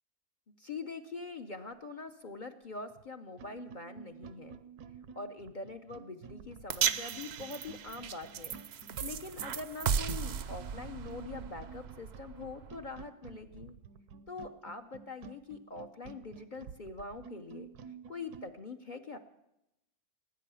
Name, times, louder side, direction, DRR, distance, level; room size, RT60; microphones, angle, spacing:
voice 1, 0.6-4.6 5.2-8.5 9.0-13.7 14.3-17.7 18.1-19.2, left 3 dB, 45° left, 7 dB, 0.6 m, -44 dB
sound 1, 2.9-3.0 3.4-18.5, right 6 dB, 80° right, 1.3 m, -51 dB
sound 2, 6.7-13.1, right 8 dB, 60° right, 0.7 m, -36 dB
18.5 x 9.1 x 6.9 m, 0.88 s
omnidirectional pair, 1.6 m